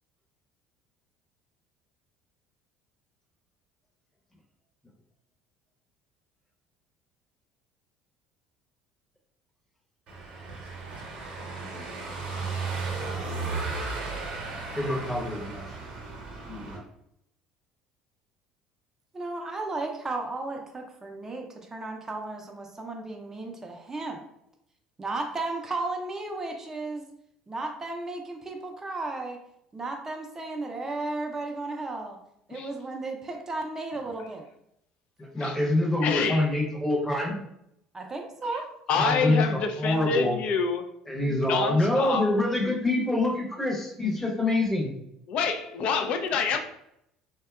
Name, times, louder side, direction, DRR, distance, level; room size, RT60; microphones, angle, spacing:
Car passing by / Engine, 10.1-16.8, right 4 dB, 55° right, 0.7 m, -35 dB
voice 1, 14.7-15.8 16.5-16.8 35.2-37.4 39.0-40.4 41.1-44.9, left 2 dB, 10° left, 0.8 m, -26 dB
voice 2, 19.1-24.2 25.0-27.0 27.5-29.4 29.7-32.2 32.5-34.5 37.9-38.7, right 2 dB, 20° right, 0.4 m, -34 dB
voice 3, 36.0-36.4 38.9-40.9 41.3-42.3 45.3-46.6, left 5 dB, 60° left, 0.4 m, -27 dB
2.7 x 2.2 x 2.3 m
hypercardioid pair, 75°, 2 cm